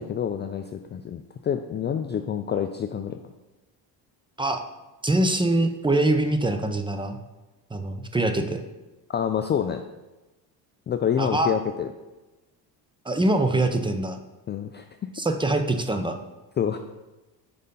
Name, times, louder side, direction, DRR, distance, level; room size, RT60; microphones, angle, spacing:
voice 1, 0.0-3.2 9.1-9.8 10.9-11.9 14.5-15.1 16.6-16.8, left 8 dB, 25° left, 7 dB, 0.3 m, -27 dB
voice 2, 5.0-7.2 7.7-8.6 11.2-11.5 13.1-14.2 15.1-16.2, right 2 dB, 10° right, 6 dB, 0.7 m, -23 dB
6.6 x 5.2 x 5.4 m, 1.1 s
cardioid pair, 100°, 43 cm